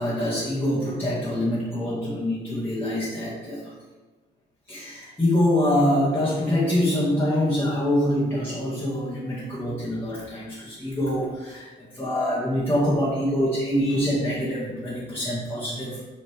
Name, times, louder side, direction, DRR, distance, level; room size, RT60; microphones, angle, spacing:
voice 1, 0.0-3.7 4.7-11.7 11.9-16.0, left 1 dB, 10° left, -10 dB, 2.1 m, -25 dB
7.9 x 4.2 x 3.6 m, 1.2 s
cardioid pair, 90°, 20 cm